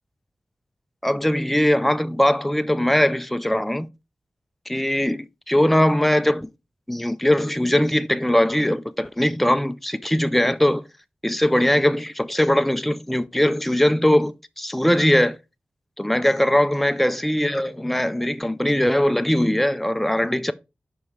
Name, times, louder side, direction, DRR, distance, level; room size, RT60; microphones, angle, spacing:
voice 1, 1.0-3.9 4.7-6.5 6.9-10.8 11.2-15.4 16.0-20.5, left 1 dB, 5° left, 0.4 m, -20 dB
6.9 x 5.4 x 3.2 m
wide cardioid pair, 90°, 3 cm